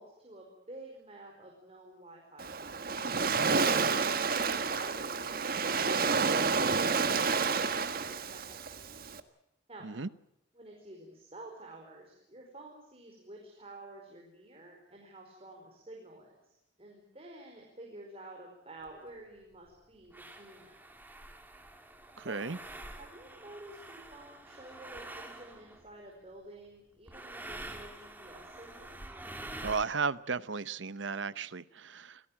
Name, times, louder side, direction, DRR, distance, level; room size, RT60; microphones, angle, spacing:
voice 1, 0.0-3.0 3.6-8.9 9.7-9.9 10.5-20.8 22.2-22.4 22.9-29.0, right 2 dB, 30° right, 0 dB, 4.9 m, -51 dB
Waves surf, 2.4-9.2, right 5 dB, 50° right, 1.6 m, -29 dB
sound 1, 18.8-18.9 19.7-19.8 20.1-25.9 27.1-29.9, right 1 dB, 10° right, 2.6 m, -47 dB
voice 2, 22.2-22.6 29.6-32.2, right 4 dB, 70° right, 16 dB, 0.9 m, -34 dB
27.5 x 17.0 x 8.9 m, 0.83 s
head